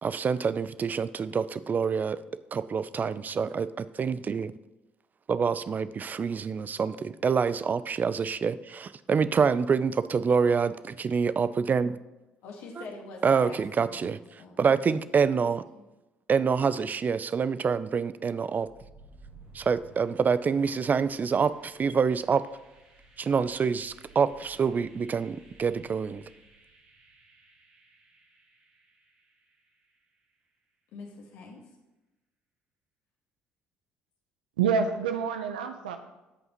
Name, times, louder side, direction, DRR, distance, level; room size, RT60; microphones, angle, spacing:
voice 1, 0.0-2.2 2.5-4.5 5.3-12.0 13.2-14.2 14.6-15.6 16.3-18.7 19.5-22.4 23.2-26.2, right 6 dB, 35° right, 15 dB, 0.5 m, -26 dB
voice 2, 12.4-14.8 15.7-15.8 30.9-31.8, left 3 dB, 70° left, -1 dB, 1.7 m, -45 dB
sound 1, 18.5-30.3, right 2 dB, 65° right, 2.6 m, -57 dB
voice 3, 34.6-36.0, right 6 dB, 85° right, 7 dB, 0.7 m, -27 dB
15.5 x 5.5 x 3.1 m, 1.0 s
hypercardioid pair, 55°, 5 cm